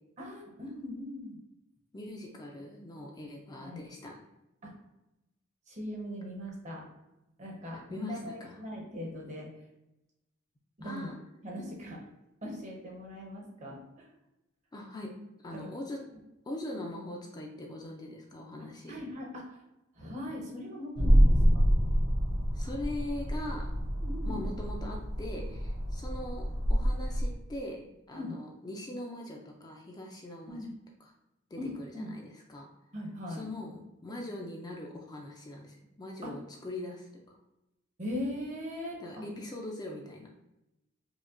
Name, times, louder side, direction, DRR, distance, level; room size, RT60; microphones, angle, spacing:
voice 1, 0.2-1.4 3.6-3.8 4.6-4.7 5.7-6.8 7.4-9.5 10.8-11.1 11.4-12.0 12.4-14.1 15.5-15.7 18.6-19.6 19.9-21.6 24.0-24.4 28.1-28.4 30.5-30.7 31.6-32.1 32.9-33.4 36.2-36.3 38.0-39.2, left 1 dB, 35° right, -1 dB, 0.8 m, -40 dB
voice 2, 1.9-4.1 7.6-8.6 10.8-11.2 14.7-15.1 15.4-16.0 16.5-19.0 22.5-23.7 24.3-30.7 31.5-32.7 33.3-37.4 39.0-40.3, left 1 dB, 20° left, 0 dB, 0.4 m, -41 dB
sound 1, 20.9-27.3, equal, 80° right, 0.8 m, -27 dB
4.8 x 2.2 x 2.5 m, 0.92 s
head